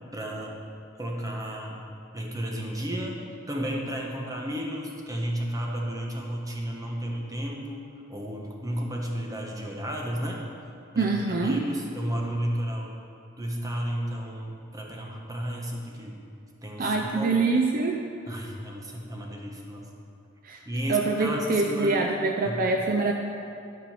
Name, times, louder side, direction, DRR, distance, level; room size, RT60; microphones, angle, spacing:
voice 1, 0.1-0.6 1.0-1.9 2.1-3.2 3.5-7.8 8.1-10.4 10.9-13.0 13.4-16.2 16.6-17.4 18.3-19.9 20.6-22.0 22.4-22.6, equal, 20° right, -1 dB, 1.2 m, -33 dB
voice 2, 11.0-11.6 16.8-18.0 20.4-20.6 20.9-23.1, right 3 dB, 45° right, 2 dB, 0.6 m, -25 dB
12.5 x 5.5 x 5.8 m, 2.6 s
head